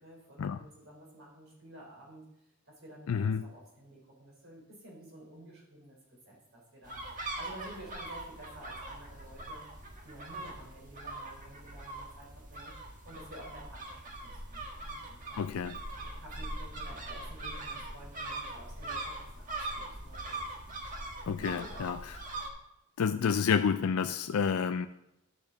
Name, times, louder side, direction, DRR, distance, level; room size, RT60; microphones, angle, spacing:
voice 1, 0.0-2.2 2.7-7.0 7.3-9.7 10.0-12.7 13.0-15.5 16.0-20.9 21.4-21.9, right 1 dB, 65° right, -2 dB, 4.3 m, -51 dB
voice 2, 3.1-3.5 15.4-15.8 21.3-22.2 23.0-24.9, left 6 dB, 85° left, 9 dB, 0.4 m, -29 dB
sound 1, 6.8-22.5, right 2 dB, 40° right, 1.5 m, -42 dB
11.5 x 7.0 x 4.0 m, 0.86 s
head